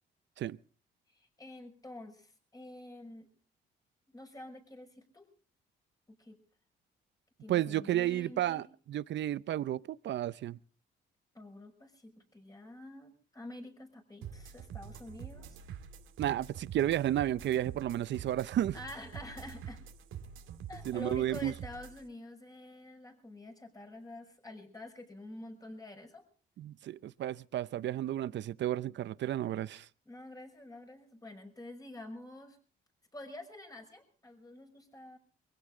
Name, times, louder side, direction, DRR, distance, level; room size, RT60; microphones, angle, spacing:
voice 1, 1.1-3.3 4.1-5.3 6.1-6.4 7.4-8.7 11.3-15.6 18.7-19.8 20.7-26.2 30.1-32.6 33.1-35.2, left 1 dB, 20° left, 6.0 m, -48 dB
voice 2, 7.5-10.6 16.2-18.7 20.9-21.5 26.6-29.9, right 12 dB, 65° right, 0.7 m, -32 dB
sound 1, 14.2-22.0, right 8 dB, 85° right, 2.1 m, -46 dB
23.0 x 16.0 x 3.8 m
cardioid pair, 90°, 20 cm